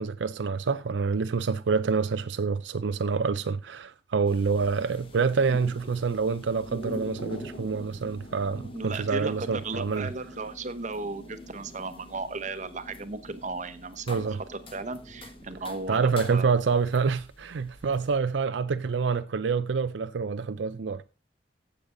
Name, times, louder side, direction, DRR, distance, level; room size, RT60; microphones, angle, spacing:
voice 1, 0.0-10.1 14.1-14.4 15.9-21.0, right 5 dB, 80° right, 0.5 m, -27 dB
sound 1, 4.2-18.2, left 2 dB, 30° left, 1.4 m, -51 dB
sound 2, 4.5-16.6, equal, 85° left, 4.5 m, -45 dB
voice 2, 8.7-16.5, right 3 dB, 40° right, 1.0 m, -35 dB
15.0 x 6.8 x 3.8 m
head